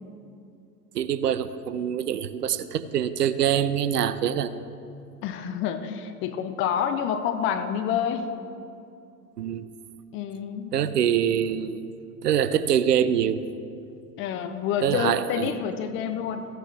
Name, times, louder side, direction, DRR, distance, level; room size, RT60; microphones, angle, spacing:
voice 1, 0.9-4.5 9.4-9.7 10.7-11.9 12.2-13.4 14.8-15.5, right 9 dB, 80° right, 14 dB, 0.7 m, -24 dB
voice 2, 5.2-8.3 10.1-10.8 14.2-16.5, left 8 dB, 25° left, 9 dB, 0.6 m, -28 dB
15.0 x 9.3 x 3.4 m, 2.6 s
hypercardioid pair, 105°, 47 cm